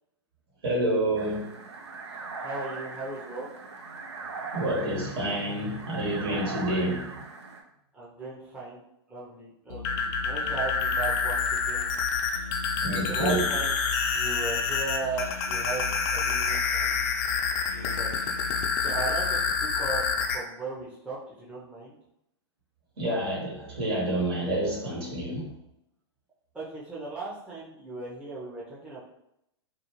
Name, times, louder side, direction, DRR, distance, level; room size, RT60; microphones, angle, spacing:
voice 1, 0.6-1.5 4.5-7.2 12.8-13.5 23.0-25.5, right 1 dB, 65° right, -4 dB, 1.3 m, -28 dB
sound 1, 1.2-7.6, right 4 dB, 80° right, 0.5 m, -40 dB
voice 2, 2.4-3.6 7.9-8.8 9.1-12.8 13.1-13.8 14.1-17.3 17.7-22.0 26.5-29.0, right 3 dB, 10° right, -7 dB, 0.7 m, -37 dB
sound 2, 9.7-20.4, left 5 dB, 45° left, 0.4 m, -28 dB
2.4 x 2.3 x 3.0 m, 0.81 s
hypercardioid pair, 115°, 14 cm